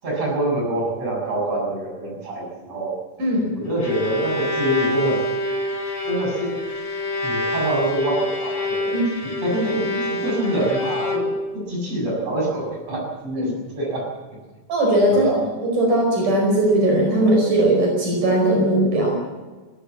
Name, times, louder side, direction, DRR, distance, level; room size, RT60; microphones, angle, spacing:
voice 1, 0.0-2.9 3.6-5.2 6.0-6.6 7.2-9.0 9.4-14.1 15.1-15.4, right 1 dB, 50° right, -1 dB, 8.4 m, -25 dB
voice 2, 3.2-3.5 8.9-9.0 9.5-9.6 13.4-13.5 14.7-15.3 15.6-19.2, right 1 dB, 80° right, 0 dB, 6.5 m, -19 dB
Bowed string instrument, 3.5-11.6, left 1 dB, 50° left, 4.9 m, -26 dB
20.5 x 18.0 x 7.4 m, 1.3 s
omnidirectional pair, 3.6 m